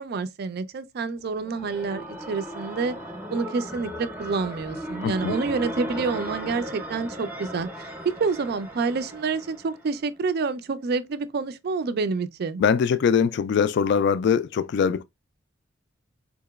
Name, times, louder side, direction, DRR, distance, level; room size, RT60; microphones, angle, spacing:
voice 1, 0.0-2.9 3.3-7.7 8.0-12.6, right 4 dB, 55° right, 0.4 m, -28 dB
sound 1, 1.2-10.0, equal, 10° right, 0.7 m, -37 dB
voice 2, 5.0-5.3 12.6-15.0, left 6 dB, 60° left, 0.3 m, -22 dB
3.9 x 2.8 x 2.3 m
head